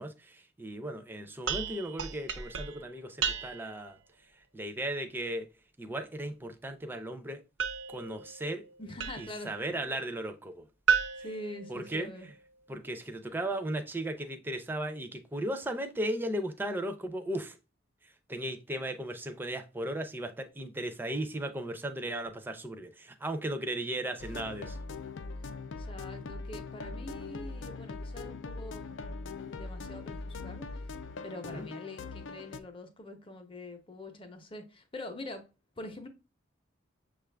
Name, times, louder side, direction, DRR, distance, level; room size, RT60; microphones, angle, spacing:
voice 1, 0.0-4.0 4.5-5.5 5.8-7.4 7.9-8.6 9.2-10.6 11.7-12.1 12.7-17.6 18.3-24.8 31.5-31.6, right 1 dB, 10° right, 0.5 m, -36 dB
sound 1, 1.5-3.9 7.6-9.5 10.9-12.3, right 7 dB, 65° right, 0.5 m, -34 dB
voice 2, 8.8-9.9 11.2-12.3 25.8-29.0 29.4-30.9 31.2-35.5 35.8-36.1, left 1 dB, 25° left, 0.7 m, -44 dB
sound 2, 24.2-32.6, left 3 dB, 70° left, 0.4 m, -41 dB
6.3 x 2.4 x 3.3 m
head